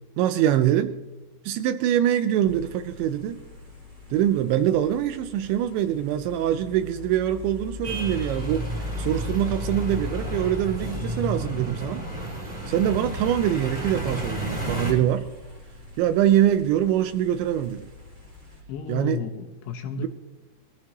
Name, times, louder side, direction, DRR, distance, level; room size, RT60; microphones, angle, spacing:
voice 1, 0.2-1.0 1.5-3.4 4.1-8.7 9.0-12.0 12.7-15.3 16.0-17.9 18.9-19.2 20.0-20.1, right 11 dB, 85° right, 9 dB, 2.6 m, -24 dB
sound 1, 2.4-18.6, left 3 dB, 25° right, 1.0 m, -40 dB
sound 2, 7.8-14.9, right 1 dB, 10° right, 2.4 m, -32 dB
voice 2, 18.7-20.1, left 7 dB, 75° left, 6 dB, 2.9 m, -33 dB
21.5 x 15.0 x 3.0 m, 1.0 s
omnidirectional pair, 5.7 m